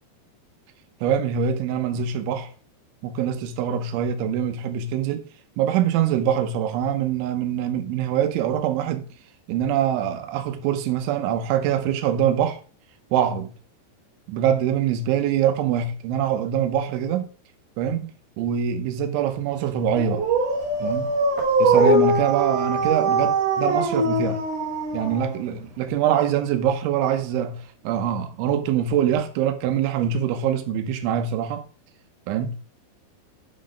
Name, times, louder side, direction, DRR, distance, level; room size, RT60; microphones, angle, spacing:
voice 1, 1.0-2.5 3.0-5.3 5.6-9.1 9.5-12.6 13.1-13.5 14.3-17.3 17.8-20.3 20.8-21.1 21.6-24.4 24.9-31.6 32.3-32.6, right 9 dB, 85° right, 3.3 m, -24 dB
Dog, 20.0-25.6, right 2 dB, 55° right, 2.5 m, -22 dB
8.7 x 4.1 x 5.1 m
omnidirectional pair, 5.3 m